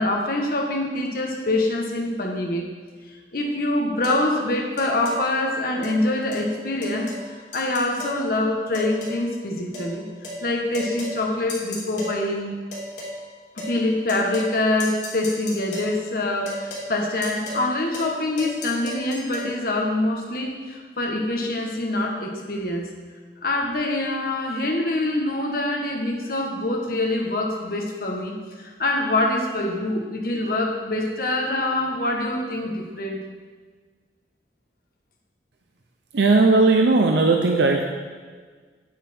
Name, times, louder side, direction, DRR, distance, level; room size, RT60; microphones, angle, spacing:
voice 1, 0.0-2.7 3.3-10.1 10.4-12.5 13.5-22.9 23.4-33.2, left 2 dB, 55° left, 1 dB, 1.3 m, -25 dB
sound 1, 4.0-4.2 4.8-5.2 5.8-6.0 6.3-6.5 6.8-7.3 7.5-8.2 8.7-9.2 9.7-9.9 10.2-10.4 10.7-11.2 11.5-12.2 12.7-13.2 13.6-13.8 14.1-14.5 14.8-15.9 16.5-16.9 17.2-17.7 17.9-18.1 18.4-19.5, left 1 dB, 85° left, 3.3 m, -34 dB
voice 2, 36.1-37.8, right 3 dB, 80° right, 2 dB, 0.7 m, -17 dB
9.2 x 8.4 x 4.4 m, 1.5 s
head